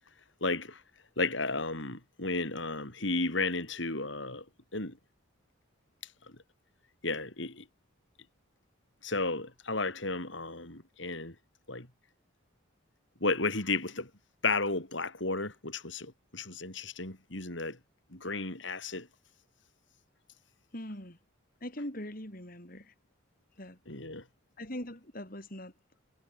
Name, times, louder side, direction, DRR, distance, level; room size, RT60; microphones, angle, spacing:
voice 1, 0.4-0.8 1.2-4.5 4.7-5.0 7.0-7.6 9.0-11.4 11.7-11.9 13.2-14.1 14.4-17.8 18.1-19.1 23.9-24.2, left 3 dB, 70° left, 5.3 m, -33 dB
voice 2, 20.7-21.2 21.6-22.9 23.6-23.8 24.6-25.7, left 1 dB, 45° left, 5.3 m, -41 dB
head